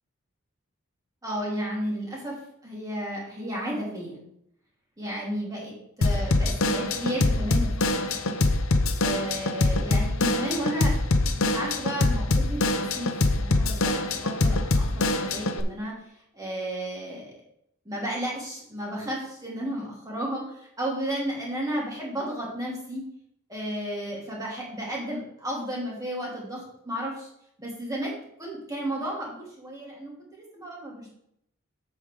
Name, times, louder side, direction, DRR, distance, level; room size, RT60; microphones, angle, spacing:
voice 1, 1.2-2.4 2.6-4.2 5.0-8.5 9.0-10.9 11.4-15.9 16.3-17.3 17.8-23.1 23.5-27.3 27.6-28.1 28.4-31.1, equal, 15° right, -4 dB, 2.6 m, -33 dB
Drum kit / Drum, 6.0-15.6, left 2 dB, 65° left, 0.7 m, -24 dB
8.0 x 6.9 x 3.7 m, 0.74 s
head